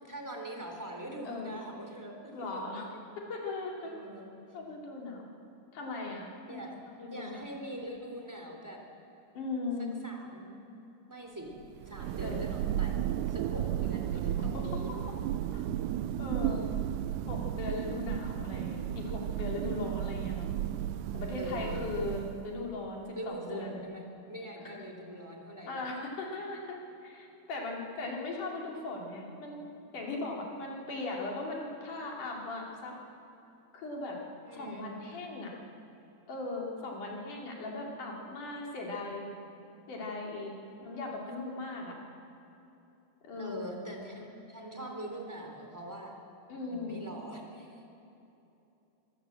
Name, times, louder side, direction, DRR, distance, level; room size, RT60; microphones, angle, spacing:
voice 1, 0.0-2.1 2.5-2.6 2.9-3.0 3.8-4.3 6.4-6.8 7.1-8.8 10.0-10.5 11.1-11.5 11.8-13.0 13.3-14.3 14.6-14.9 18.5-18.7 19.6-19.8 21.4-21.9 23.1-25.8 34.4-34.9 43.3-46.1 46.6-47.8, right 1 dB, 5° right, 1 dB, 3.2 m, -43 dB
voice 2, 2.3-3.9 4.5-5.3 5.7-6.6 7.0-7.4 9.3-9.9 12.2-12.5 14.4-15.0 15.5-15.6 16.2-16.7 17.3-20.5 21.1-23.8 24.6-24.7 25.7-29.6 29.9-32.9 33.7-34.2 34.5-35.5 36.3-39.3 39.9-40.5 40.8-42.0 43.2-43.5 46.5-47.0, left 2 dB, 70° left, -1 dB, 4.6 m, -38 dB
Thunder, 11.6-22.7, right 11 dB, 80° right, 2.2 m, -34 dB
25.0 x 17.5 x 7.8 m, 2.9 s
omnidirectional pair, 3.8 m